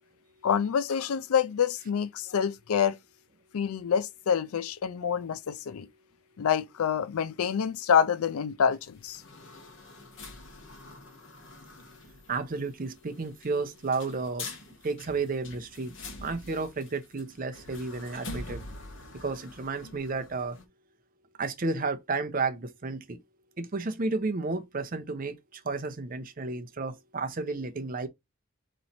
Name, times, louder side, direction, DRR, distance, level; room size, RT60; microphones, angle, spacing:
voice 1, 0.4-3.0 3.5-5.9 6.4-9.2, left 7 dB, 80° left, 0.4 m, -27 dB
sound 1, 8.7-20.6, left 2 dB, 55° left, 1.2 m, -46 dB
voice 2, 12.3-14.5 14.8-15.9 16.2-18.6 19.2-20.6 21.4-23.2 23.6-28.1, right 3 dB, 40° right, 0.6 m, -32 dB
4.1 x 3.1 x 4.0 m
head